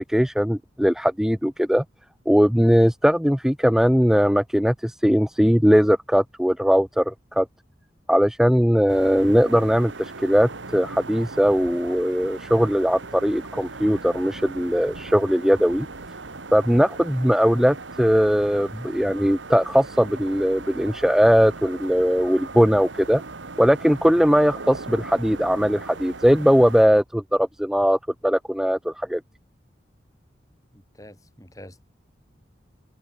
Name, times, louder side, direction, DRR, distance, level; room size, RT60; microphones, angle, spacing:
voice 1, 0.0-1.8 2.3-7.5 8.1-15.9 16.5-23.2 23.6-29.2, equal, 5° right, 0.8 m, -20 dB
sound 1, 8.9-26.8, right 3 dB, 90° right, 1.8 m, -38 dB
voice 2, 30.7-31.8, left 1 dB, 20° left, 6.7 m, -46 dB
head